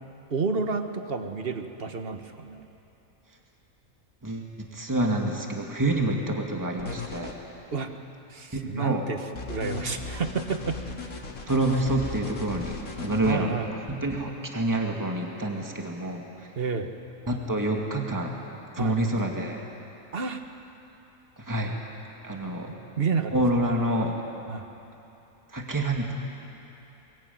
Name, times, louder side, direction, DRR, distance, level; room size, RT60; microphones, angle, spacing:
voice 1, 0.3-2.6 7.7-7.9 8.3-10.8 13.2-13.7 16.5-16.9 18.8-19.2 20.1-20.4 22.7-23.4 24.5-24.7, right 5 dB, 45° right, 6 dB, 1.5 m, -30 dB
voice 2, 4.7-7.3 8.8-9.0 11.5-13.5 13.9-16.2 17.3-18.4 18.8-19.6 21.5-21.7 22.2-22.7 23.3-24.1 25.5-26.1, right 1 dB, 15° right, 1 dB, 2.2 m, -27 dB
sound 1, 6.8-7.3 9.3-13.3, left 3 dB, 80° left, 2.6 m, -36 dB
22.5 x 21.5 x 9.4 m, 2.9 s
omnidirectional pair, 1.5 m